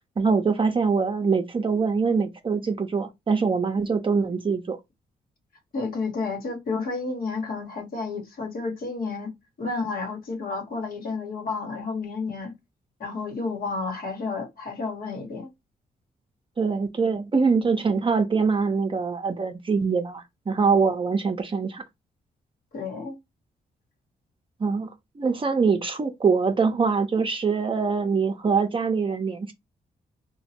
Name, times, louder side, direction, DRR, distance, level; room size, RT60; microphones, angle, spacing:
voice 1, 0.2-4.8 16.6-21.8 24.6-24.9 25.2-29.5, right 5 dB, 30° right, 0.5 m, -23 dB
voice 2, 5.7-12.5 13.0-15.5 22.7-23.1, left 4 dB, 65° left, 1.1 m, -31 dB
3.0 x 2.2 x 2.8 m
cardioid pair, 70°, 16 cm